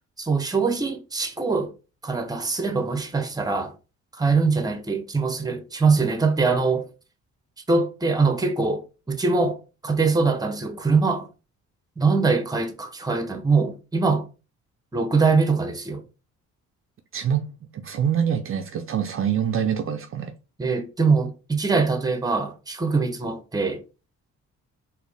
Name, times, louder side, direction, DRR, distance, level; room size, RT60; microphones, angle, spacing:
voice 1, 0.2-1.7 2.0-3.7 4.2-6.8 7.7-9.6 9.8-11.3 12.0-14.2 14.9-16.0 20.6-23.8, right 4 dB, 15° right, 0.7 m, -23 dB
voice 2, 17.1-17.4 17.8-20.3, right 8 dB, 45° right, 0.5 m, -25 dB
4.2 x 2.6 x 3.3 m
cardioid pair, 90°, 30 cm